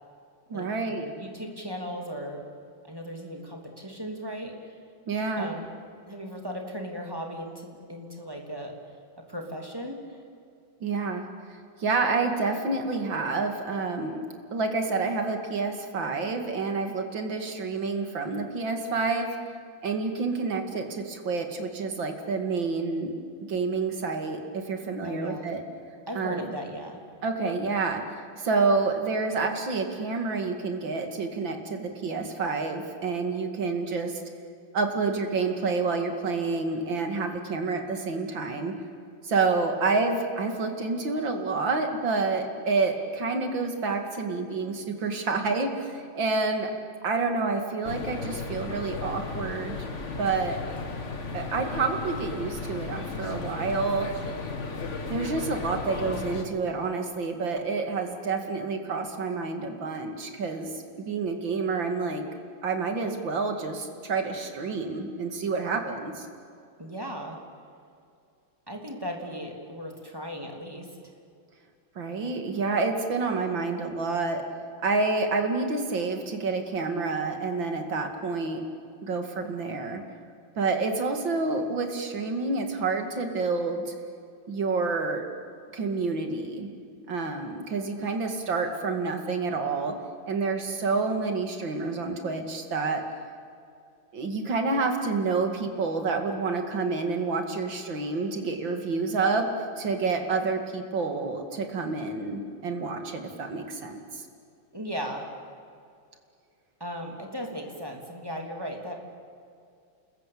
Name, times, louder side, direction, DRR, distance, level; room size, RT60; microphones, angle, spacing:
voice 1, 0.5-1.1 5.1-5.5 10.8-11.2 11.8-14.2 14.5-19.4 19.8-23.1 23.5-25.6 26.1-26.5 27.2-28.0 28.4-34.2 34.7-38.7 39.2-46.7 47.0-49.8 50.2-50.6 51.3-54.1 55.1-60.7 61.0-62.2 62.6-66.3 72.0-74.4 74.8-78.6 79.0-80.0 80.5-83.9 84.5-85.2 85.7-86.7 87.1-89.9 90.3-93.0 94.1-99.5 99.8-104.2, right 4 dB, 70° right, 5 dB, 3.1 m, -28 dB
voice 2, 1.0-2.4 2.8-4.8 5.4-5.7 6.1-8.8 9.3-10.2 25.0-25.5 26.1-27.0 66.8-67.4 68.7-71.0 104.7-105.3 106.8-109.0, equal, 10° right, 1 dB, 3.0 m, -37 dB
sound 1, 47.8-56.4, left 4 dB, 35° left, 2.0 m, -35 dB
28.5 x 21.0 x 8.7 m, 2.4 s
omnidirectional pair, 2.2 m